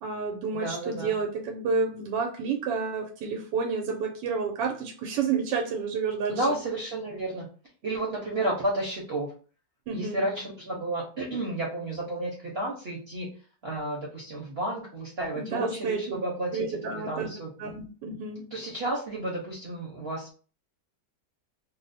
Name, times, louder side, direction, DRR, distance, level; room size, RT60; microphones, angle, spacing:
voice 1, 0.0-6.5 9.9-10.2 15.3-16.2 16.5-17.3 17.6-18.5, right 5 dB, 90° right, 2 dB, 1.3 m, -30 dB
voice 2, 0.5-1.2 6.3-7.5 7.8-9.3 9.9-13.3 13.6-16.7 16.9-17.5 18.5-20.3, right 1 dB, 50° right, -3 dB, 0.7 m, -31 dB
3.0 x 2.0 x 4.0 m, 0.38 s
omnidirectional pair, 1.9 m